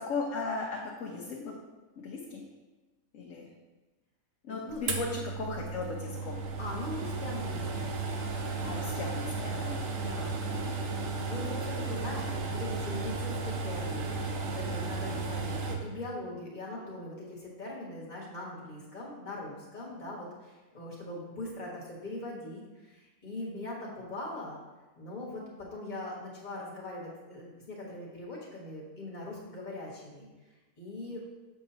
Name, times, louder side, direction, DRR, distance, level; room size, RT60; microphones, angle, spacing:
voice 1, 0.0-1.6 2.0-2.4 3.1-3.5 4.4-6.4 8.6-9.8, left 3 dB, 70° left, -2 dB, 1.1 m, -36 dB
voice 2, 4.5-4.8 6.6-8.0 9.9-10.4 11.2-24.6 25.0-30.3 30.8-31.2, left 2 dB, 35° left, -4 dB, 1.6 m, -41 dB
sound 1, 4.9-15.8, right 3 dB, 70° right, 1.0 m, -34 dB
7.0 x 5.5 x 2.8 m, 1.2 s
omnidirectional pair, 1.4 m